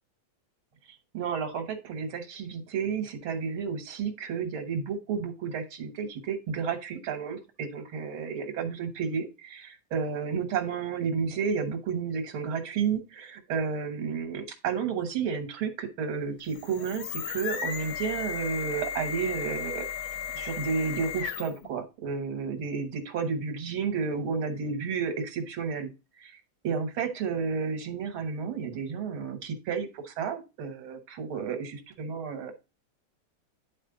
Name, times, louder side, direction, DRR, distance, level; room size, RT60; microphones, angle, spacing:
voice 1, 1.1-19.9 20.3-25.9 26.2-26.4 26.6-32.5, right 6 dB, 90° right, 5 dB, 2.2 m, -32 dB
sound 1, 16.4-21.7, left 8 dB, 85° left, 1.8 m, -35 dB
10.5 x 4.3 x 3.9 m, 0.28 s
omnidirectional pair, 2.2 m